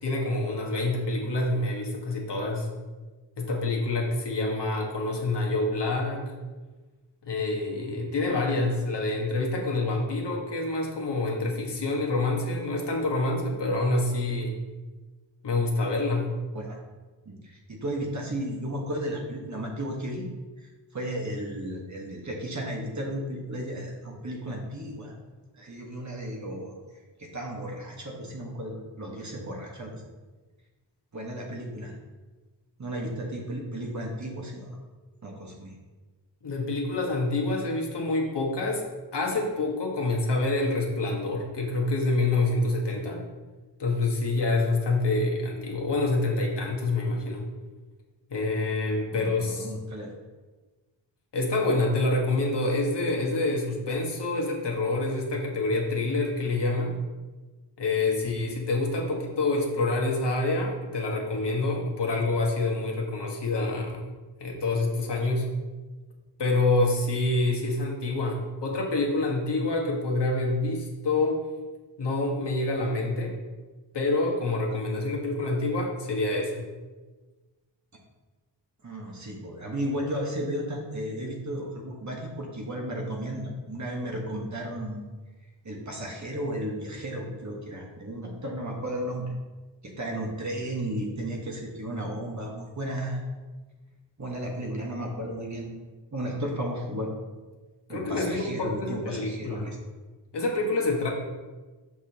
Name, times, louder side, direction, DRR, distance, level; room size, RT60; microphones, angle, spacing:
voice 1, 0.0-2.7 3.4-6.3 7.2-14.6 15.4-16.3 36.4-38.8 39.1-43.3 43.8-47.4 48.3-49.7 51.3-57.0 57.8-64.0 64.4-65.5 66.4-71.4 72.0-73.4 73.9-76.7 97.9-99.7 100.3-101.1, left 2 dB, 65° left, -1 dB, 1.5 m, -27 dB
voice 2, 17.2-20.3 20.6-25.1 25.6-26.7 27.2-30.0 31.1-31.9 32.8-34.8 35.2-35.7 49.1-50.1 78.8-85.0 85.6-89.3 89.8-93.3 94.2-95.8 96.1-97.1 97.9-99.8, right 1 dB, 40° right, -1 dB, 1.4 m, -34 dB
6.1 x 5.9 x 2.9 m, 1.3 s
cardioid pair, 65°, 45 cm